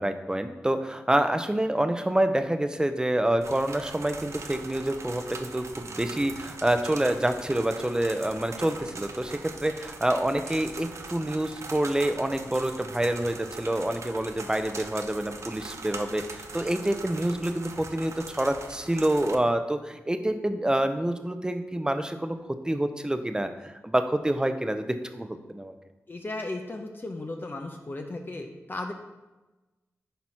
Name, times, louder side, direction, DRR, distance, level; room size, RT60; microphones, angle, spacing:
voice 1, 0.0-22.4 22.6-25.7, right 1 dB, 15° right, 8 dB, 0.8 m, -27 dB
sound 1, 3.4-19.3, right 4 dB, 60° right, 0.8 m, -41 dB
voice 2, 26.1-28.9, left 2 dB, 40° left, 3 dB, 0.9 m, -35 dB
10.5 x 4.1 x 4.5 m, 1.1 s
cardioid pair, 50°, 5 cm